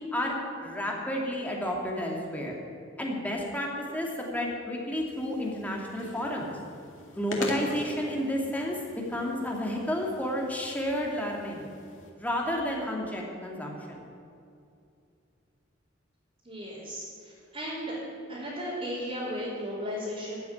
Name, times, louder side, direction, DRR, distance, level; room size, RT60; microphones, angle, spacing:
voice 1, 0.6-2.6 3.0-6.5 7.1-11.7 12.2-14.1, left 1 dB, 10° left, -1 dB, 2.2 m, -31 dB
sound 1, 5.1-12.1, left 2 dB, 85° left, 2.2 m, -43 dB
voice 2, 16.4-18.0 18.3-20.4, equal, 30° right, -10 dB, 3.6 m, -35 dB
13.5 x 6.9 x 9.7 m, 2.5 s
head